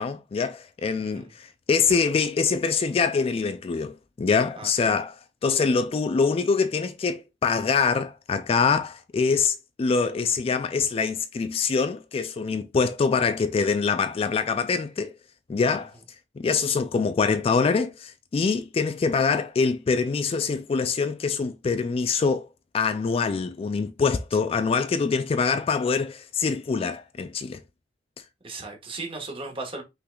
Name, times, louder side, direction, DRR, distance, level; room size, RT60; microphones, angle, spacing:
voice 1, 0.0-5.1 5.4-15.1 15.5-15.9 16.4-22.5 22.7-27.6, left 5 dB, 35° left, 0.3 m, -24 dB
voice 2, 1.0-1.3 4.6-4.9 28.4-29.8, right 3 dB, 30° right, 1.4 m, -36 dB
5.6 x 3.9 x 2.3 m
head